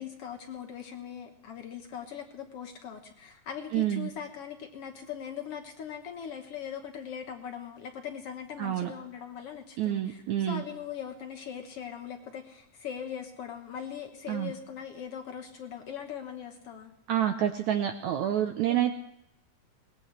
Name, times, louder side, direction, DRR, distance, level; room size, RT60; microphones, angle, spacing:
voice 1, 0.0-16.9 18.6-18.7, left 8 dB, 60° left, 5 dB, 1.6 m, -40 dB
voice 2, 3.7-4.1 8.6-8.9 9.8-10.6 14.3-14.5 17.1-18.9, right 11 dB, 75° right, 6 dB, 1.8 m, -28 dB
21.5 x 19.5 x 3.2 m, 0.80 s
omnidirectional pair, 4.1 m